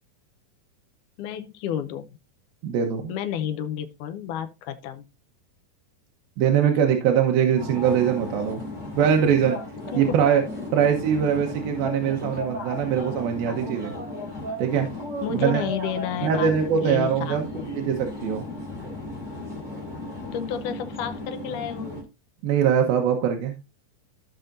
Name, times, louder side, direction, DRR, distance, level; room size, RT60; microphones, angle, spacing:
voice 1, 1.2-2.1 3.1-5.0 9.9-10.2 15.2-16.5 16.8-17.6 20.3-22.1, left 8 dB, 75° left, 1.9 m, -31 dB
voice 2, 2.6-3.1 6.4-8.6 9.0-9.6 9.9-10.4 10.7-13.9 14.6-14.9 15.3-15.6 16.2-18.5 22.4-23.6, right 8 dB, 75° right, 2.7 m, -22 dB
sound 1, 7.6-22.0, left 2 dB, 10° right, 3.1 m, -35 dB
15.0 x 5.7 x 2.6 m
omnidirectional pair, 4.4 m